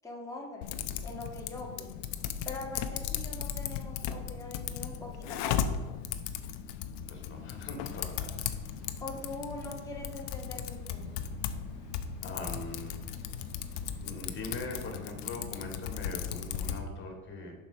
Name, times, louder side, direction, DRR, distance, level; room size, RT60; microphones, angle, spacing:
voice 1, 0.0-0.7 1.0-2.0 2.4-6.0 9.0-11.1, left 2 dB, 10° left, -2 dB, 1.8 m, -42 dB
Typing, 0.6-16.8, left 9 dB, 60° left, 0.8 m, -37 dB
voice 2, 7.1-8.4 12.2-13.0 14.0-17.5, left 2 dB, 30° left, 2 dB, 2.5 m, -41 dB
sound 1, 8.6-14.9, right 2 dB, 60° right, 2.4 m, -51 dB
7.2 x 5.1 x 6.1 m, 1.2 s
supercardioid pair, 120°, 41 cm